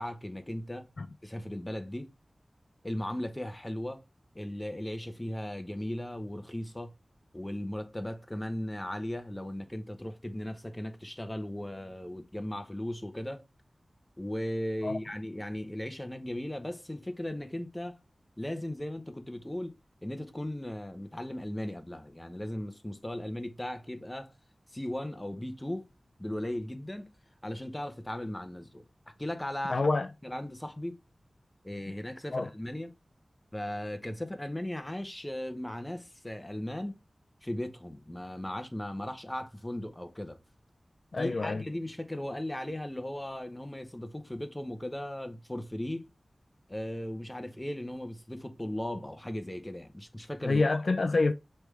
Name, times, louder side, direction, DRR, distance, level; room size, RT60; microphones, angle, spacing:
voice 1, 0.0-0.9 1.2-2.1 2.8-4.0 4.3-6.9 7.3-13.4 14.2-18.0 18.4-19.7 20.0-24.3 24.7-25.9 26.2-27.1 27.4-28.8 29.2-29.8 30.2-31.0 31.6-32.9 33.5-37.0 37.4-40.4 41.2-46.1 46.7-50.6, left 1 dB, 15° left, 0.8 m, -37 dB
voice 2, 29.7-30.1 32.3-32.5 41.1-41.6 50.5-51.3, left 3 dB, 70° left, 0.3 m, -27 dB
3.3 x 3.3 x 4.6 m
wide cardioid pair, 60°, 0 cm